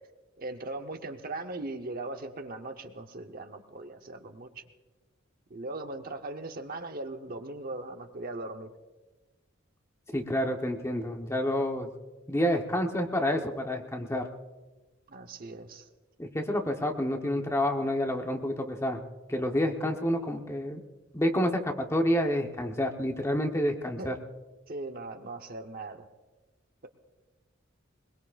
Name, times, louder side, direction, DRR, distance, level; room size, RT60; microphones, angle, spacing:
voice 1, 0.4-4.6 5.5-8.7 15.1-15.9 24.0-24.1 24.7-26.1, right 2 dB, 50° right, 6 dB, 1.0 m, -39 dB
voice 2, 10.1-11.9 12.3-14.3 16.2-19.0 19.3-20.8 21.1-24.1, left 1 dB, 15° left, 3 dB, 1.0 m, -28 dB
21.5 x 21.5 x 2.5 m, 1.2 s
head